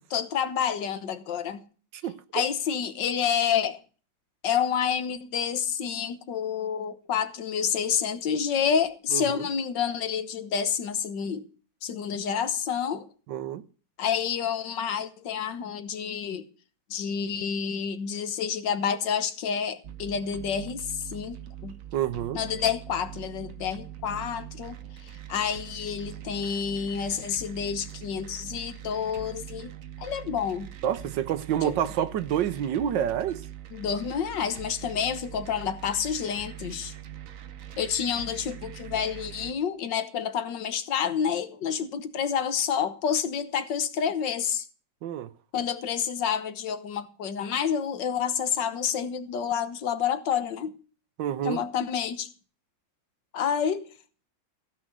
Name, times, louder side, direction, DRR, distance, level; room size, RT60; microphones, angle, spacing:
voice 1, 0.1-1.6 2.3-3.8 4.4-11.5 11.8-13.1 14.0-16.5 16.9-21.8 22.3-29.7 30.0-30.7 31.6-31.7 33.7-36.9 37.8-44.7 45.5-50.7 51.4-52.3 53.3-53.9, left 7 dB, 75° left, 1.8 m, -29 dB
voice 2, 1.9-2.5 9.1-9.4 13.3-13.6 21.9-22.4 30.8-33.4 45.0-45.3 51.2-51.6, right 10 dB, 80° right, 1.5 m, -28 dB
sound 1, 19.8-39.5, right 10 dB, 55° right, 1.2 m, -43 dB
15.5 x 6.1 x 7.6 m
omnidirectional pair, 2.0 m